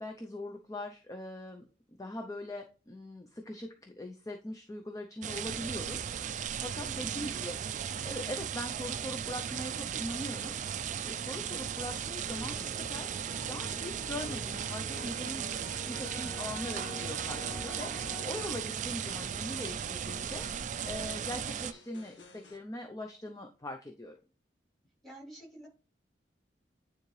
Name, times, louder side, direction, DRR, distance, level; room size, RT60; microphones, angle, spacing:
voice 1, 0.0-1.7 2.0-7.6 8.0-10.6 11.0-13.1 13.5-15.4 15.8-20.5 20.8-24.2, left 1 dB, 20° left, 4 dB, 0.6 m, -41 dB
sound 1, 5.2-21.7, right 8 dB, 40° right, 0.3 m, -36 dB
voice 2, 6.8-7.1 15.8-16.1 25.0-25.7, right 1 dB, ahead, -5 dB, 3.4 m, -49 dB
sound 2, 12.2-18.6, left 2 dB, 40° left, 2.6 m, -47 dB
sound 3, 14.6-22.6, left 3 dB, 75° left, 1.5 m, -57 dB
9.5 x 3.8 x 3.2 m, 0.35 s
head